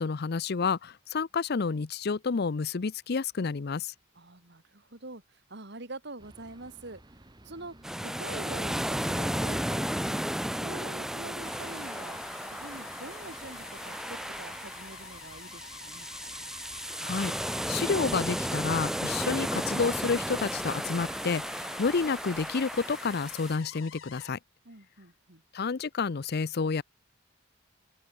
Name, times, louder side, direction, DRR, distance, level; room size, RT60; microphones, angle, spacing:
voice 1, 0.0-3.9 17.0-17.3 17.7-24.4 25.5-26.8, left 5 dB, 55° left, 0.6 m, -30 dB
voice 2, 4.1-7.0 7.4-10.2 10.5-16.1 24.6-25.4, right 2 dB, 60° right, 2.8 m, -45 dB
sound 1, 6.2-17.9, right 1 dB, 20° right, 2.0 m, -56 dB
sound 2, 7.8-23.6, equal, ahead, 0.9 m, -34 dB
sound 3, 11.4-24.3, left 7 dB, 80° left, 1.5 m, -48 dB
open air
head